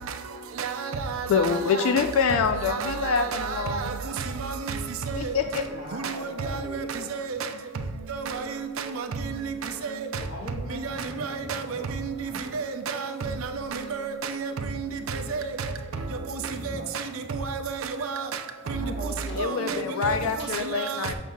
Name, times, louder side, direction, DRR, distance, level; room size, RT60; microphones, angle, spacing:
voice 1, 0.6-1.9 2.7-4.1 4.4-4.5 5.1-5.3 6.0-6.8 7.1-7.4 8.1-8.5 8.8-9.1 9.8-10.1 10.8-11.8 12.5-14.5 15.1-15.6 16.3-16.4 16.7-16.8 17.3-18.3 18.7-18.8 19.4-19.8 20.0-20.1 20.7-21.0, right 5 dB, 75° right, 0.5 m, -31 dB
voice 2, 1.3-3.9 5.2-5.6 19.4-21.1, left 6 dB, 75° left, 0.4 m, -25 dB
voice 3, 5.5-7.1 10.1-12.5 13.0-13.3 13.8-13.9 15.0-15.5 15.9-16.0 16.5-17.2 17.5-17.6 18.6-20.6, left 1 dB, 55° left, 1.3 m, -41 dB
6.6 x 6.3 x 2.3 m
head